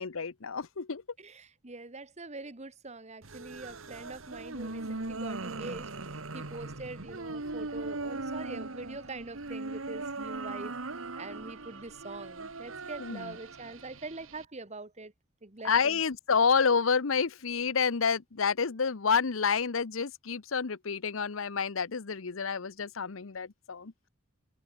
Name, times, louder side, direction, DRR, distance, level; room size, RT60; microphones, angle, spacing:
voice 1, 0.0-1.0 13.0-13.4 15.6-23.9, left 5 dB, 75° left, 0.8 m, -29 dB
voice 2, 1.2-5.9 6.3-10.7 11.2-15.1 15.4-16.0, right 3 dB, 35° right, 1.5 m, -44 dB
sound 1, 3.2-14.4, right 2 dB, 80° right, 2.0 m, -39 dB
open air
head